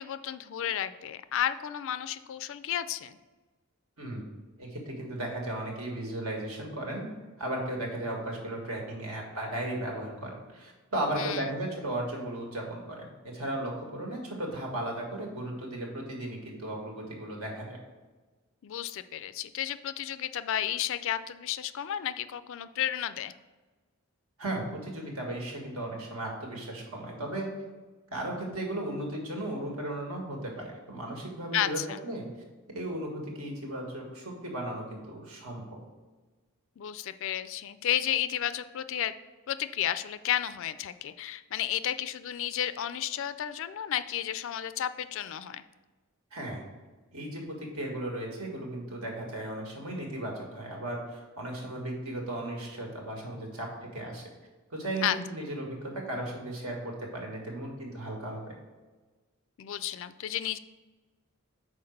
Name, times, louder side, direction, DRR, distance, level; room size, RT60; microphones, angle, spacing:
voice 1, 0.0-3.2 11.2-11.5 18.6-23.3 31.5-32.0 36.8-39.1 39.5-45.6 55.0-55.2 59.6-60.6, left 10 dB, 60° left, 13 dB, 0.3 m, -32 dB
voice 2, 4.0-4.3 4.6-7.1 7.4-17.8 24.4-27.5 28.1-32.2 32.7-35.8 46.3-46.7 47.1-54.2 54.7-58.5, right 1 dB, 75° right, 0 dB, 1.9 m, -36 dB
5.8 x 4.6 x 6.4 m, 1.3 s
head